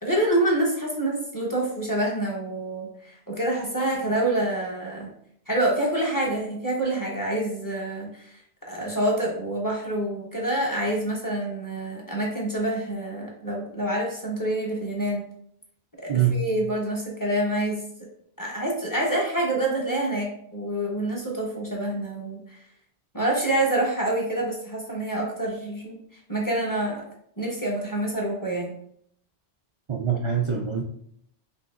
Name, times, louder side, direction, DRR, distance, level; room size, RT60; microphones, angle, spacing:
voice 1, 0.0-5.1 5.5-8.3 8.6-15.2 16.0-17.8 18.4-22.6 23.1-26.0 26.3-27.1 27.4-28.7, right 1 dB, 20° left, -3 dB, 1.0 m, -27 dB
voice 2, 16.1-16.4 29.9-30.8, right 8 dB, 55° right, 0 dB, 0.3 m, -24 dB
5.2 x 3.0 x 2.5 m, 0.68 s
omnidirectional pair, 1.1 m